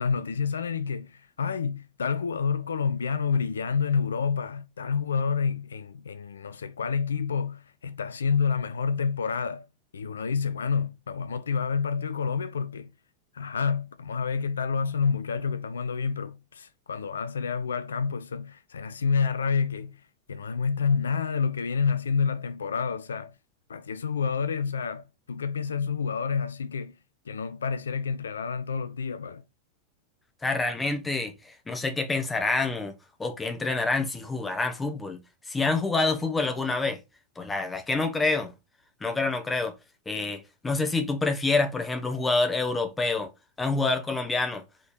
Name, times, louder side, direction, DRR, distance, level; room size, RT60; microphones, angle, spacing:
voice 1, 0.0-9.6 9.9-12.9 13.3-20.0 20.3-23.3 23.7-26.9 27.3-29.4, left 5 dB, 70° left, 0.5 m, -28 dB
voice 2, 30.4-32.9 33.2-35.2 35.5-37.0 37.4-38.5 39.0-39.7 40.0-43.3 43.6-44.6, left 3 dB, 10° left, 1.3 m, -27 dB
5.1 x 4.1 x 5.2 m
figure-of-eight pair, 90°, 0 cm